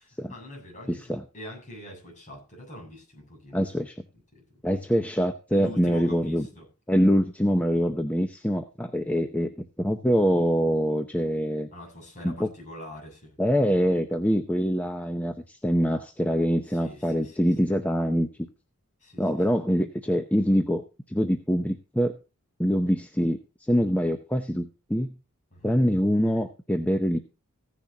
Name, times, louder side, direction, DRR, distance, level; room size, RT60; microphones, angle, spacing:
voice 1, 0.0-3.6 4.3-4.4 4.7-4.8 5.5-6.7 11.7-13.4 16.7-17.4 17.6-17.7 19.0-19.3 25.5-25.8, equal, 35° left, 0 dB, 7.6 m, -44 dB
voice 2, 0.9-1.2 3.5-4.0 4.6-6.5 6.9-11.7 12.2-12.5 13.4-18.3 19.2-22.1 22.6-23.4 23.7-25.1 25.6-27.2, equal, 5° left, 6 dB, 0.8 m, -24 dB
15.5 x 10.5 x 2.9 m, 0.30 s
head